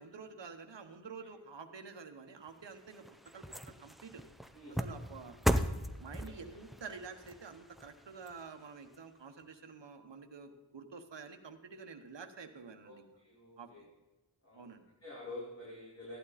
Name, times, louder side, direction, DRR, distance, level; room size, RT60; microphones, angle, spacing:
voice 1, 0.0-3.0 3.3-4.2 4.7-5.3 6.0-13.1 13.6-13.7 14.5-14.8, right 5 dB, 60° right, 5 dB, 1.2 m, -49 dB
sound 1, 2.5-9.0 9.4-9.5, equal, ahead, 0.7 m, -38 dB
voice 2, 13.2-13.8 14.4-14.7 15.0-16.2, left 2 dB, 30° left, -7 dB, 4.4 m, -47 dB
15.0 x 11.5 x 4.2 m, 1.1 s
wide cardioid pair, 75°, 48 cm